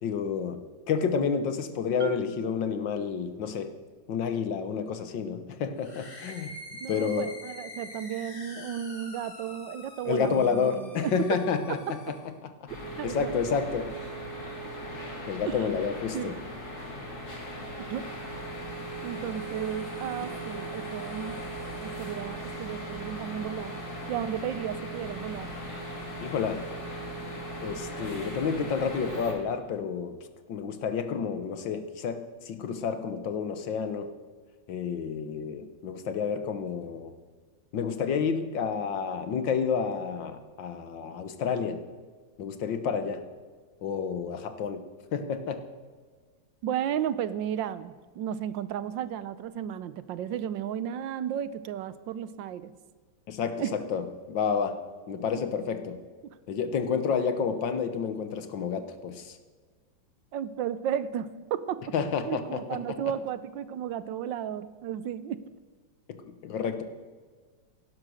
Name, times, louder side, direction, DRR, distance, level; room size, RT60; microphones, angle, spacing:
voice 1, 0.0-0.6 0.9-3.7 4.1-6.5 6.9-7.3 10.1-12.2 12.4-12.5 13.0-13.9 15.3-16.4 26.2-26.7 27.6-30.2 30.5-34.1 34.7-37.1 37.7-41.8 42.4-43.2 43.8-44.8 45.1-45.6 53.3-54.8 55.1-56.0 56.5-59.4 61.9-62.6 62.9-63.0 66.4-66.8, left 6 dB, 75° left, 9 dB, 1.9 m, -30 dB
Marimba xylophone, 2.0-3.8, right 4 dB, 45° right, 1.2 m, -42 dB
sound 1, 5.8-12.3, left 1 dB, 30° left, 2.1 m, -45 dB
voice 2, 6.8-11.4 13.0-13.3 15.5-15.7 16.1-16.4 17.8-18.1 19.0-21.4 21.8-23.7 24.1-25.5 46.6-52.7 53.6-53.7 55.4-55.5 60.3-61.9 62.2-65.4, right 9 dB, 80° right, 15 dB, 1.4 m, -33 dB
sound 2, 12.7-29.3, right 1 dB, 55° left, 3.2 m, -38 dB
16.0 x 11.5 x 6.4 m, 1.5 s
omnidirectional pair, 2.0 m